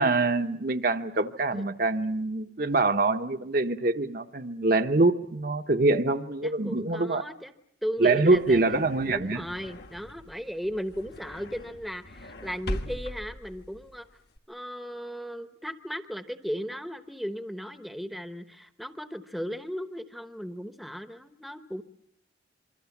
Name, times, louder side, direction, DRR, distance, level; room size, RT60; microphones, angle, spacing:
voice 1, 0.0-7.2 8.0-9.4, right 3 dB, 45° right, 0.9 m, -24 dB
voice 2, 6.4-7.5 7.8-14.1 14.5-21.8, equal, ahead, 0.9 m, -36 dB
sound 1, 8.0-14.4, left 1 dB, 55° left, 1.4 m, -41 dB
27.5 x 23.5 x 7.2 m
head